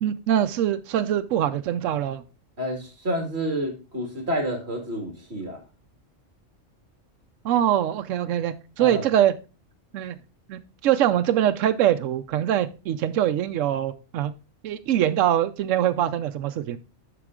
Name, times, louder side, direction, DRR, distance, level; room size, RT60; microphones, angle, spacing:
voice 1, 0.0-2.2 7.4-9.3 9.9-10.2 10.5-14.3 14.6-16.8, right 11 dB, 80° right, 10 dB, 1.0 m, -23 dB
voice 2, 2.6-5.6 8.8-9.0, equal, 55° right, 2 dB, 2.4 m, -29 dB
8.1 x 6.0 x 3.6 m, 0.31 s
omnidirectional pair, 1.3 m